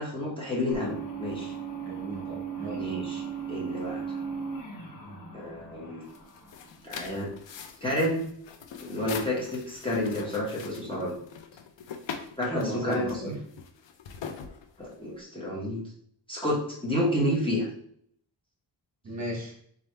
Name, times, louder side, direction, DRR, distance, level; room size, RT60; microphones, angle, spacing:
voice 1, 0.0-1.5 2.7-3.2 3.5-4.0 5.3-6.0 6.8-7.3 7.8-8.2 8.8-11.2 12.4-13.4 14.8-15.8 16.3-17.7, left 1 dB, 10° left, -6 dB, 1.0 m, -30 dB
sound 1, 0.7-7.1, right 6 dB, 50° left, 1.1 m, -37 dB
voice 2, 1.8-2.9 12.5-13.4 19.0-19.5, right 1 dB, 40° right, -3 dB, 1.3 m, -36 dB
sound 2, 6.0-15.2, left 6 dB, 80° left, 0.6 m, -42 dB
3.8 x 3.3 x 3.2 m, 0.64 s
wide cardioid pair, 160°, 43 cm